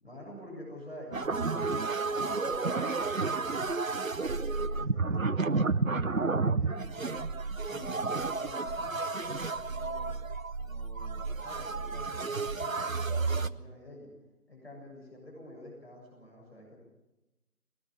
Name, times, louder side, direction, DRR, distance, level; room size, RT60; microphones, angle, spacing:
voice 1, 0.0-1.7 2.1-3.7 4.2-7.3 7.7-10.2 10.6-14.1 14.5-16.8, left 1 dB, 40° left, -2 dB, 7.4 m, -49 dB
sound 1, 1.1-13.5, right 4 dB, 60° right, 0.8 m, -31 dB
22.0 x 19.0 x 7.4 m, 1.0 s
figure-of-eight pair, 175°, 46 cm